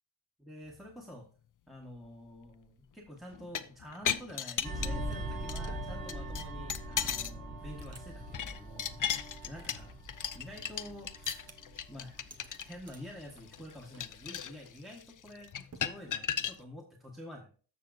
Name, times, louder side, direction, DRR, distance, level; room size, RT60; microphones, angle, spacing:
voice 1, 0.4-1.3 1.7-10.0 10.3-11.5 11.9-12.2 12.5-17.5, left 1 dB, ahead, -1 dB, 1.4 m, -48 dB
sound 1, 3.3-5.1 5.5-5.7 6.1-7.4 7.7-16.6, left 8 dB, 45° left, 0.6 m, -36 dB
sound 2, 3.8-3.9 4.2-7.2 7.6-8.1 8.3-8.4 8.9-10.9 11.2-11.8 12.2-13.0 13.4-13.7 13.9-14.2 14.5-14.7 15.7-16.5, right 4 dB, 35° right, 1.0 m, -55 dB
sound 3, 4.6-13.7 14.0-14.3, right 1 dB, 50° right, 3.6 m, -42 dB
14.0 x 6.0 x 2.5 m, 0.40 s
wide cardioid pair, 100°, 45 cm